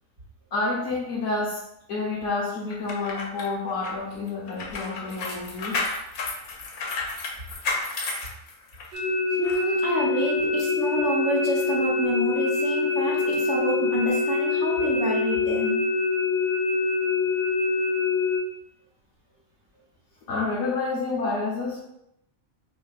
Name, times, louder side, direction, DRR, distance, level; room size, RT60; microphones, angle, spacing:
voice 1, 0.5-1.6 1.9-6.0 20.3-21.8, left 3 dB, 65° left, -7 dB, 1.3 m, -29 dB
sound 1, 2.7-9.0 9.4-9.6, left 3 dB, 90° left, 1.2 m, -32 dB
sound 2, 8.9-18.4, left 4 dB, 40° right, 1.1 m, -25 dB
voice 2, 9.4-15.8, right 2 dB, 60° right, -3 dB, 1.2 m, -28 dB
6.0 x 2.6 x 2.4 m, 0.79 s
omnidirectional pair, 1.4 m